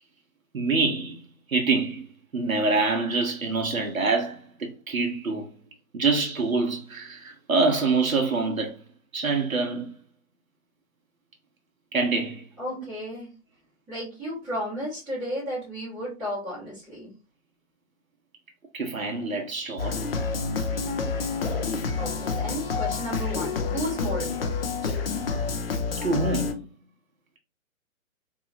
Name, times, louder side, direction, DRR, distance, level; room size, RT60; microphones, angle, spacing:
voice 1, 0.5-1.2 1.5-2.0 2.3-5.5 5.9-8.8 9.1-9.9 11.9-12.4 18.7-20.0 26.0-26.6, right 3 dB, 75° right, 0.8 m, -25 dB
voice 2, 12.6-13.3 13.9-17.1 22.0-24.9, equal, 5° right, 0.6 m, -33 dB
sound 1, 19.8-26.5, left 4 dB, 45° left, 0.5 m, -28 dB
2.7 x 2.7 x 2.5 m
figure-of-eight pair, 130°, 41 cm